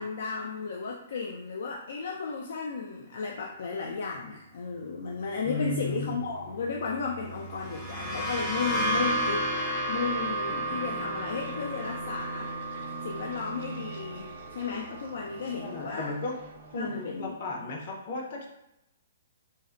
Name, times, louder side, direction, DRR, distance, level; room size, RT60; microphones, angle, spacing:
voice 1, 0.0-12.5 13.0-16.1 16.7-17.4, left 5 dB, 65° left, 0 dB, 0.3 m, -34 dB
sound 1, 3.9-17.2, right 2 dB, 50° right, 0.5 m, -45 dB
voice 2, 5.4-6.2 15.6-16.3 16.7-18.5, left 2 dB, 50° left, 0 dB, 0.8 m, -34 dB
sound 2, 7.5-15.1, right 1 dB, 15° left, 0.7 m, -32 dB
3.7 x 2.1 x 2.5 m, 0.87 s
hypercardioid pair, 155°, 0 cm